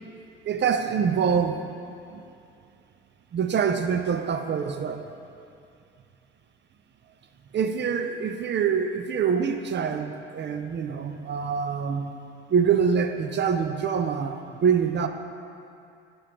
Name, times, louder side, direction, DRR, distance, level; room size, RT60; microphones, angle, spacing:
voice 1, 0.4-1.8 2.1-2.2 3.3-5.1 7.5-12.1 12.5-15.1, right 6 dB, 40° right, 7 dB, 0.5 m, -25 dB
4.9 x 4.4 x 5.6 m, 2.5 s
hypercardioid pair, 50°, 29 cm